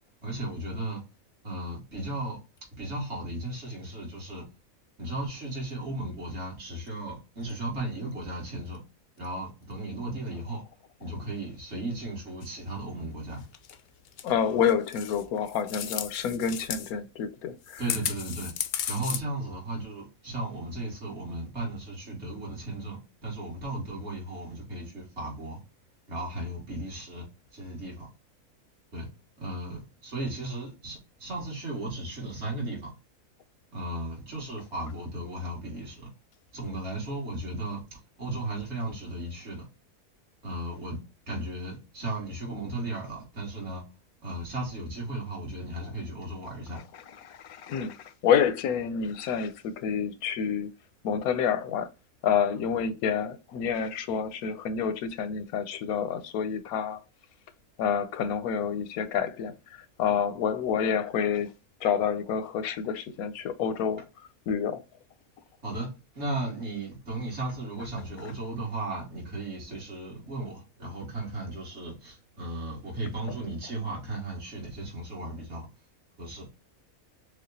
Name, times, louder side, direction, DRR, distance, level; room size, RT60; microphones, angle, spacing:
voice 1, 0.2-1.0 1.4-2.4 2.8-4.4 5.0-8.8 9.2-10.6 11.0-13.4 17.8-18.5 18.9-25.6 26.1-27.3 27.5-28.1 28.9-29.1 29.4-32.9 33.7-36.1 36.5-39.6 40.4-41.0 41.3-43.8 44.2-46.8 65.6-65.9 66.1-75.7 76.2-76.5, right 2 dB, 50° right, 2.2 m, -35 dB
sound 1, 12.4-12.5 13.5-13.8 14.1-14.3 14.6-16.9 17.6-19.2, left 9 dB, 70° left, 0.6 m, -35 dB
voice 2, 14.2-17.8 47.2-48.0 48.2-50.7 51.0-51.9 52.2-57.0 57.8-61.5 61.8-64.0 64.5-64.8, left 7 dB, 90° left, 1.1 m, -28 dB
6.3 x 2.3 x 2.7 m
omnidirectional pair, 1.5 m